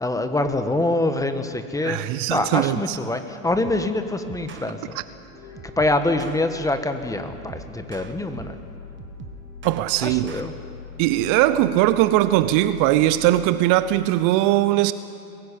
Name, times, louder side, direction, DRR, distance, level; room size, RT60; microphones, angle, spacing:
voice 1, 0.0-2.0 2.3-5.0 5.8-8.6 10.0-10.5, left 2 dB, 10° left, 1.3 m, -25 dB
voice 2, 1.8-3.0 9.6-10.3 11.0-14.9, right 15 dB, 45° right, 0.8 m, -20 dB
sound 1, 3.6-3.9 4.3-4.7 5.5-6.4 7.3-8.6 9.0-10.5, right 7 dB, 25° right, 1.5 m, -42 dB
sound 2, 4.9-13.3, left 5 dB, 50° left, 5.8 m, -42 dB
22.0 x 15.5 x 8.4 m
hypercardioid pair, 105°, 43 cm